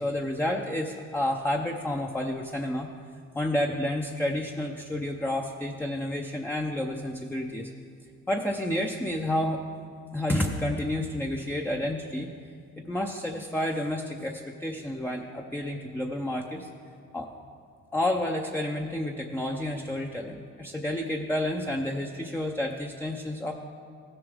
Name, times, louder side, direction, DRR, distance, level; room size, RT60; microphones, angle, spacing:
voice 1, 0.0-2.9 3.3-7.7 8.3-9.6 10.1-12.3 12.8-16.7 17.1-17.3 17.9-23.5, left 1 dB, 5° left, 1 dB, 0.6 m, -30 dB
15.5 x 7.0 x 3.5 m, 2.2 s
cardioid pair, 90°, 30 cm